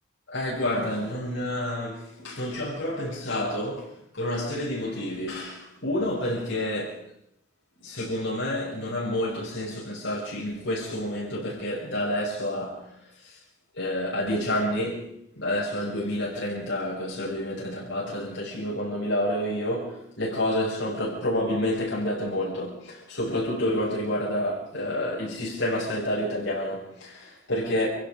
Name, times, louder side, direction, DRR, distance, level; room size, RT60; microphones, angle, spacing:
voice 1, 0.3-7.1 7.8-13.4 13.7-15.1 15.3-27.9, left 1 dB, 65° left, 6.8 m, -29 dB
29.0 x 17.0 x 5.3 m
head